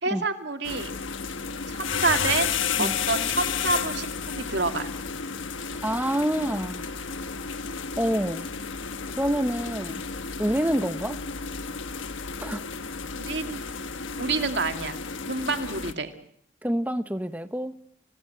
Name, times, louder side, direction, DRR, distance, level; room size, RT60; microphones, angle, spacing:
voice 1, 0.0-0.9 1.7-2.5 2.8-4.1 4.3-4.9 13.1-13.6 14.2-15.0 15.3-16.1, right 3 dB, 65° right, 6 dB, 2.4 m, -28 dB
sound 1, 0.6-15.9, left 6 dB, 90° left, 1.4 m, -32 dB
voice 2, 5.8-6.8 8.0-8.5 9.2-10.0 10.4-11.2 12.4-12.6 16.6-17.7, equal, 10° right, 11 dB, 1.0 m, -27 dB
29.0 x 18.0 x 7.8 m, 0.67 s
head